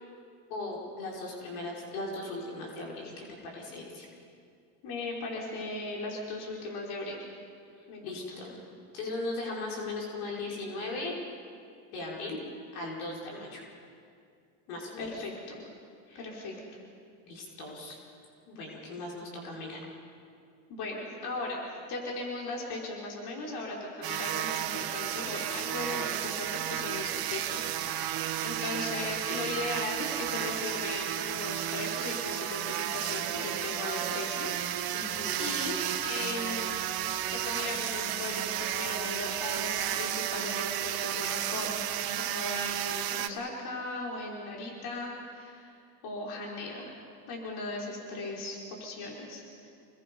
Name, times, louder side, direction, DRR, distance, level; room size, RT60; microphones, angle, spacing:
voice 1, 0.5-4.1 8.0-8.6 8.9-11.1 11.9-12.4 12.7-13.6 14.7-15.2 16.1-16.3 17.3-18.0 18.5-19.8 34.9-35.4, left 2 dB, 90° left, -3 dB, 5.6 m, -38 dB
voice 2, 4.8-7.2 7.9-8.4 15.0-15.6 16.1-16.5 20.7-36.7 37.3-41.8 42.2-45.7 46.0-46.9 47.3-49.7, left 2 dB, 65° left, -2 dB, 5.0 m, -38 dB
sound 1, 24.0-43.3, right 11 dB, 55° right, 1.6 m, -33 dB
28.0 x 21.5 x 5.5 m, 2.3 s
supercardioid pair, 80°, 42 cm